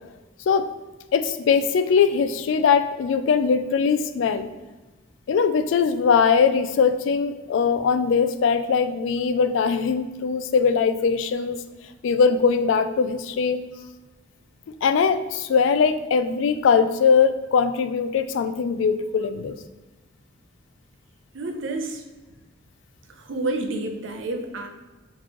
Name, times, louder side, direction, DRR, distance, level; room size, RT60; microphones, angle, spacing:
voice 1, 1.1-4.5 5.3-11.6 12.0-13.6 14.8-19.5, left 6 dB, 75° left, 11 dB, 0.3 m, -21 dB
voice 2, 21.3-22.0 23.1-24.7, right 2 dB, 80° right, 4 dB, 0.5 m, -29 dB
4.1 x 3.1 x 2.9 m, 1.1 s
head